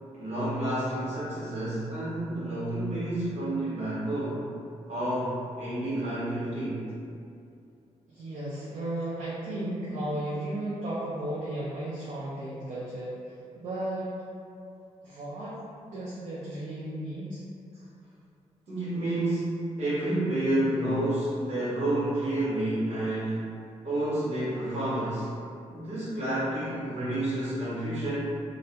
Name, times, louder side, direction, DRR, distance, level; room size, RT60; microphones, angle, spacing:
voice 1, 0.1-4.4 4.9-6.8 18.7-23.5 23.8-25.3 25.7-28.2, right 1 dB, 55° right, -10 dB, 1.1 m, -29 dB
voice 2, 8.1-14.2 15.0-15.6 15.9-17.4, right 1 dB, 70° right, -9 dB, 0.5 m, -34 dB
2.5 x 2.1 x 2.8 m, 2.5 s
wide cardioid pair, 150°, 13 cm